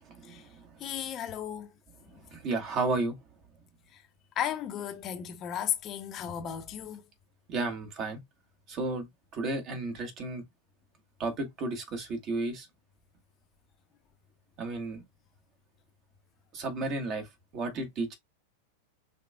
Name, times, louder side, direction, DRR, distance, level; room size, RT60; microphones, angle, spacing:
voice 1, 0.0-0.7 2.3-3.2 7.5-8.2 8.7-9.1 9.3-10.4 11.2-12.7 14.6-15.0 16.5-17.3 17.5-18.2, right 3 dB, 35° right, 1.5 m, -33 dB
voice 2, 0.8-1.7 2.1-2.2 3.9-4.0 4.4-7.0, left 9 dB, 30° left, 0.8 m, -35 dB
5.7 x 3.5 x 2.2 m
figure-of-eight pair, 90°, 0 cm